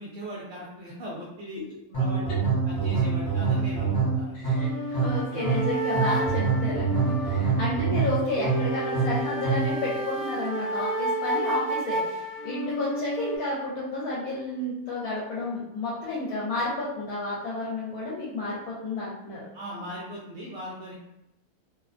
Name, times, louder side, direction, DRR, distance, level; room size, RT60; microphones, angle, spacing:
voice 1, 0.0-1.6 1.9-2.2 2.6-4.5 5.3-5.4 7.3-7.5 19.5-20.9, equal, 65° right, -5 dB, 0.8 m, -39 dB
sound 1, 1.9-9.8, right 5 dB, 45° left, 0.9 m, -26 dB
voice 2, 4.3-12.0 12.4-19.5, left 2 dB, 75° left, -6 dB, 1.1 m, -31 dB
sound 2, 4.6-13.4, right 1 dB, 35° right, 0.7 m, -31 dB
2.7 x 2.1 x 2.4 m, 0.86 s
omnidirectional pair, 1.6 m